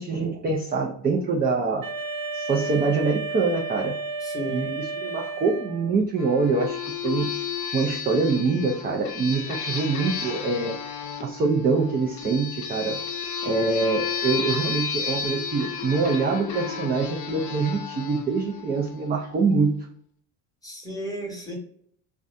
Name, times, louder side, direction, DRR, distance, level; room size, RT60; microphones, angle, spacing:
voice 1, 0.0-1.9 2.3-4.0 4.5-7.3 7.7-10.8 11.2-13.0 13.4-19.8, right 4 dB, 25° right, 0 dB, 0.4 m, -25 dB
Wind instrument woodwind instrument, 1.8-6.0, right 3 dB, 50° right, 1.1 m, -32 dB
voice 2, 4.2-4.8 20.6-21.5, right 1 dB, 10° left, 0 dB, 0.9 m, -33 dB
sound 1, 6.2-19.4, left 6 dB, 45° left, 0.6 m, -32 dB
2.5 x 2.2 x 2.4 m, 0.64 s
supercardioid pair, 90°, 41 cm